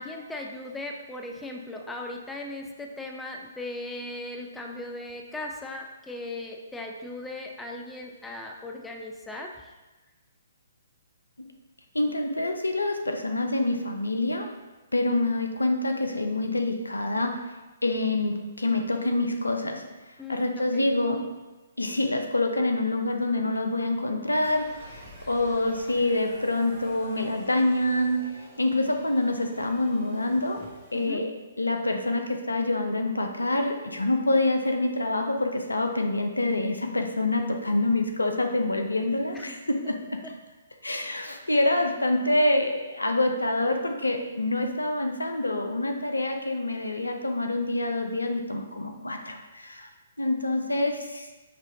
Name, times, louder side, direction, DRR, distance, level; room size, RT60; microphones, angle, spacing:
voice 1, 0.0-9.5 20.2-20.9 30.9-31.2 39.3-39.6, left 2 dB, 5° left, 1 dB, 0.4 m, -38 dB
voice 2, 11.9-14.5 14.9-17.4 17.8-19.8 20.3-21.2 21.8-30.6 30.9-31.3 31.6-40.0 40.2-40.3 40.8-49.9 50.2-51.3, left 2 dB, 80° left, 4 dB, 0.5 m, -26 dB
sound 1, 24.4-31.1, right 1 dB, 15° right, 1.2 m, -49 dB
5.3 x 3.0 x 2.6 m, 1.2 s
figure-of-eight pair, 130°, 0 cm